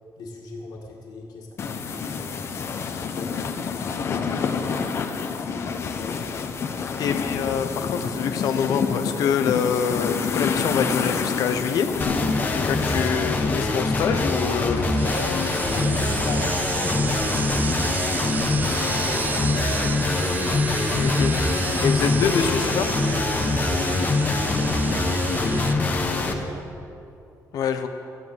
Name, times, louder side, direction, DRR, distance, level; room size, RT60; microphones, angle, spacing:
voice 1, 0.2-2.5 3.0-6.0 14.3-18.0 18.8-20.4 23.4-26.6, left 2 dB, 85° left, -2 dB, 2.0 m, -39 dB
sound 1, 1.6-13.1, left 5 dB, 40° left, 0.9 m, -28 dB
voice 2, 7.0-11.9 12.5-14.9 21.0-21.4 21.8-22.9 27.5-27.9, left 7 dB, 70° left, 7 dB, 1.1 m, -25 dB
sound 2, 12.0-26.3, left 3 dB, 25° left, 1.3 m, -24 dB
sound 3, 14.1-25.7, right 5 dB, 30° right, 0.4 m, -32 dB
14.5 x 11.0 x 7.7 m, 2.6 s
cardioid pair, 170°, 7 cm